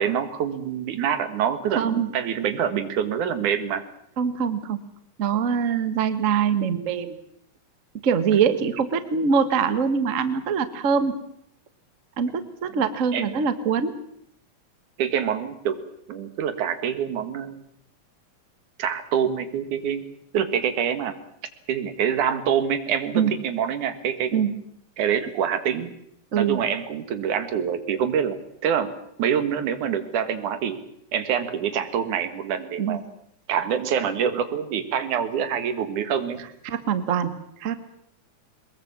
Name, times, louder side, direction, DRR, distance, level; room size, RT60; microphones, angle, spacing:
voice 1, 0.0-3.8 12.7-12.8 13.1-13.4 15.0-15.8 16.1-17.6 18.8-20.0 20.3-21.2 21.7-24.3 25.0-25.9 26.3-30.8 31.1-33.0 33.5-36.4, right 8 dB, 90° right, 10 dB, 3.1 m, -26 dB
voice 2, 1.7-2.1 4.2-4.8 5.2-7.2 8.0-11.1 12.2-14.0 23.1-23.3 24.3-24.6 26.3-26.6 32.8-33.0 36.6-37.3 37.6-37.8, right 6 dB, 40° right, 11 dB, 1.1 m, -23 dB
22.0 x 21.0 x 7.3 m, 0.72 s
omnidirectional pair, 3.4 m